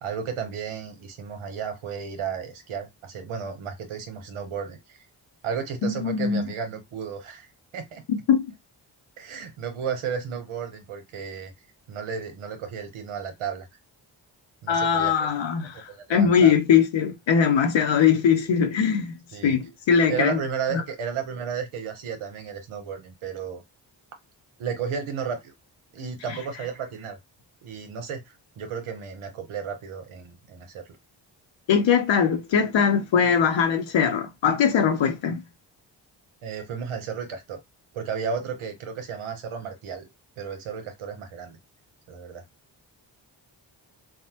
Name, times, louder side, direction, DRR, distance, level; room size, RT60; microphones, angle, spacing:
voice 1, 0.0-5.0 5.4-8.0 9.2-11.5 11.9-13.7 14.6-15.3 15.7-16.5 19.3-19.6 20.1-23.6 24.6-25.5 25.9-27.2 27.6-28.2 28.6-30.9 36.4-37.6 37.9-40.1 40.4-41.6 42.1-42.4, right 7 dB, 85° right, 0.9 m, -33 dB
voice 2, 5.8-6.4 8.3-8.5 14.7-19.1 19.4-20.4 20.7-20.8 31.7-35.4, left 7 dB, 65° left, 0.7 m, -21 dB
3.4 x 2.0 x 2.8 m
supercardioid pair, 40°, 48 cm